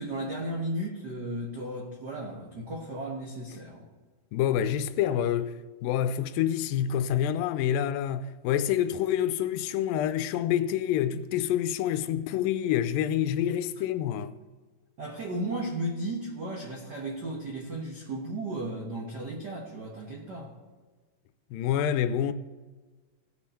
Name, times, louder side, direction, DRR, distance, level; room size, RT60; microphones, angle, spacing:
voice 1, 0.0-3.8 15.0-20.5, right 1 dB, 70° right, 0.9 m, -35 dB
voice 2, 4.3-14.4 21.5-22.3, left 10 dB, 85° left, 2.3 m, -27 dB
17.0 x 6.4 x 4.3 m
omnidirectional pair, 3.9 m